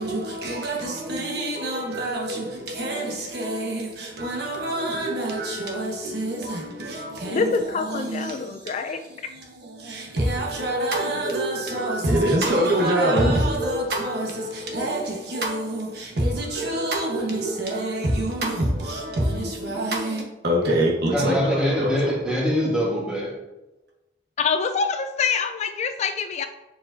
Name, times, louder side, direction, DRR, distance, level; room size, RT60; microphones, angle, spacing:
voice 1, 0.0-21.9, right 1 dB, 60° right, -1 dB, 1.3 m, -26 dB
voice 2, 7.3-9.0 24.4-26.5, left 5 dB, 40° left, 7 dB, 0.3 m, -25 dB
voice 3, 21.1-23.3, equal, 5° right, -4 dB, 1.5 m, -23 dB
7.2 x 4.7 x 2.7 m, 1.0 s
head